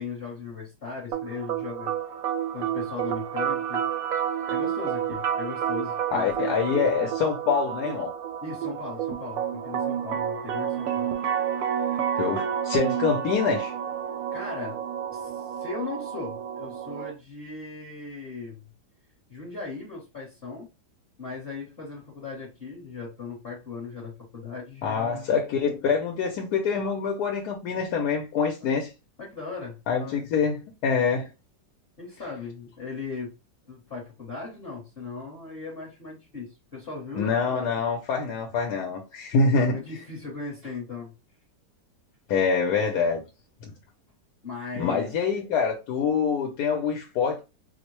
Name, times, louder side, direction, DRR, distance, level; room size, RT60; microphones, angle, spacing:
voice 1, 0.0-1.9 2.5-3.9 4.5-6.5 7.0-7.1 8.4-11.1 11.8-11.9 14.3-14.8 15.1-18.7 19.3-20.7 21.2-25.3 28.6-28.7 29.2-30.2 32.0-33.4 33.7-37.7 39.4-41.1 44.4-45.1, left 4 dB, 40° left, 1.1 m, -38 dB
sound 1, 1.1-17.1, right 9 dB, 70° right, 0.9 m, -30 dB
voice 2, 6.1-8.1 12.2-13.7 24.8-28.9 29.9-31.3 37.1-39.8 42.3-43.2 43.6-43.7 44.7-47.4, left 5 dB, 70° left, 1.1 m, -25 dB
4.4 x 2.1 x 3.0 m
omnidirectional pair, 1.9 m